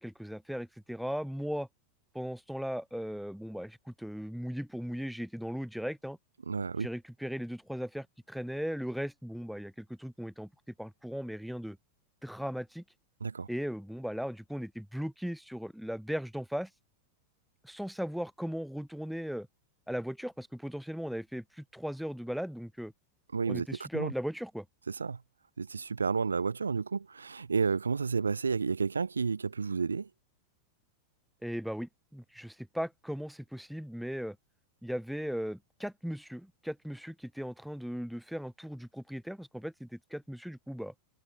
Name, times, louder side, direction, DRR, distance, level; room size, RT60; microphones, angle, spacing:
voice 1, 0.0-1.7 2.1-6.2 6.8-10.5 10.8-11.8 12.2-12.8 13.5-16.7 17.6-19.5 19.9-22.9 23.5-24.6 31.4-34.4 34.8-40.9, equal, ahead, 6.5 m, -37 dB
voice 2, 6.5-6.9 13.2-13.5 23.3-24.1 24.9-25.2 25.6-30.1, right 5 dB, 75° right, 1.3 m, -31 dB
figure-of-eight pair, 90°, 0 cm